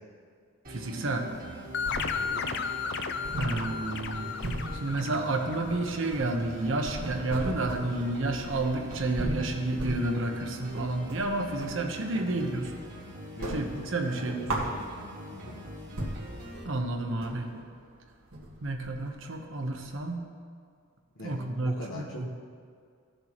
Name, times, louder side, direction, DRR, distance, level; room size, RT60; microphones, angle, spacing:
sound 1, 0.6-16.6, right 1 dB, 45° right, 1.7 m, -44 dB
voice 1, 0.7-1.3 3.3-4.3 4.8-12.7 13.5-14.6 16.6-17.5 18.6-20.2 21.2-22.3, right 2 dB, 65° right, 3 dB, 1.0 m, -30 dB
sound 2, 1.3-2.5 2.8-2.9 3.2-11.8 12.2-13.0 13.3-15.3 15.7-15.8 16.0-20.1, right 1 dB, 85° right, 1.6 m, -37 dB
sound 3, 1.7-6.1, left 6 dB, 55° left, 0.5 m, -34 dB
voice 2, 2.2-2.5 13.3-13.6 14.1-14.7 15.3-15.6 21.2-22.4, left 1 dB, 80° left, -4 dB, 1.1 m, -42 dB
16.0 x 6.7 x 3.0 m, 2.2 s
head